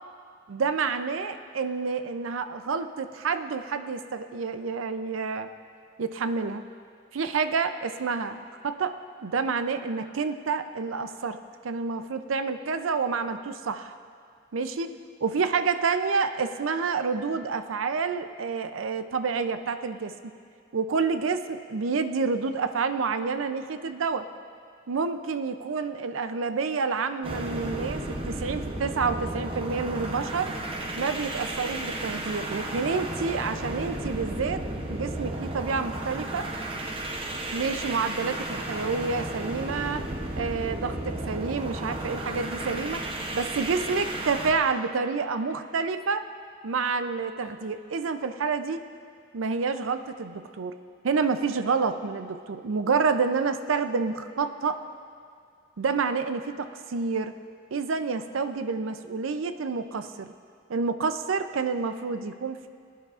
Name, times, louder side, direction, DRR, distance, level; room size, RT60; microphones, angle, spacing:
voice 1, 0.5-5.5 6.0-6.6 7.1-8.4 8.6-9.0 9.2-11.4 11.6-13.9 14.5-14.9 15.2-20.1 20.7-24.3 24.9-30.5 31.0-34.6 34.9-36.5 37.5-40.1 40.4-43.0 43.3-46.2 46.6-48.8 49.3-50.8 51.0-54.8 55.8-57.3 57.7-60.3 60.7-62.7, right 5 dB, 85° right, 10 dB, 0.5 m, -28 dB
sound 1, 27.2-44.6, right 1 dB, 30° right, 0.8 m, -33 dB
19.0 x 11.0 x 2.5 m, 2.3 s
head